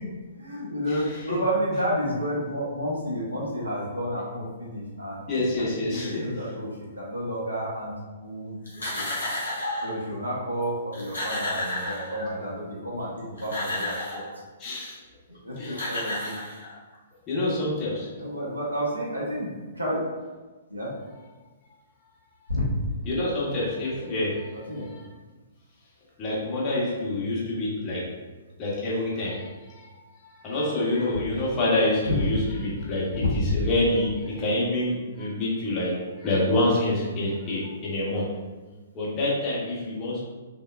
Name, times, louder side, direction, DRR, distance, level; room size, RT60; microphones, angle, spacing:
voice 1, 0.0-5.3 5.6-9.0 9.8-14.2 15.3-16.4 18.1-20.0 20.7-20.9 22.5-22.6 24.5-24.9 32.0-32.1 33.2-33.6 34.2-34.4, equal, 90° right, -6 dB, 1.0 m, -31 dB
voice 2, 0.9-1.4 5.3-6.3 14.6-15.0 15.6-15.8 17.3-18.1 23.0-25.0 26.2-28.1 28.6-29.9 30.2-38.3 38.9-40.2, left 1 dB, 25° left, -7 dB, 1.1 m, -27 dB
sound 1, 8.7-10.0 10.6-10.7 10.9-12.5 13.2-14.3 15.4-15.5 15.7-16.9, left 1 dB, 65° left, 1.4 m, -31 dB
5.4 x 2.1 x 2.3 m, 1.3 s
figure-of-eight pair, 120°, 0 cm